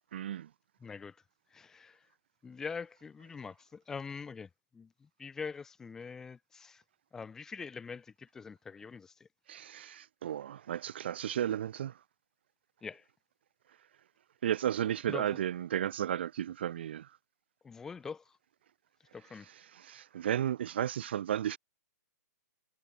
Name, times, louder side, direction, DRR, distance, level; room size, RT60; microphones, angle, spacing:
voice 1, 0.1-0.5 9.5-11.9 14.4-17.1 19.5-21.6, right 10 dB, 40° right, 0.6 m, -34 dB
voice 2, 0.8-1.2 1.5-2.0 2.4-6.8 7.1-9.3 12.8-13.0 15.1-15.4 17.6-18.2 19.1-19.5, left 5 dB, 5° left, 0.8 m, -44 dB
hypercardioid pair, 175°, 9 cm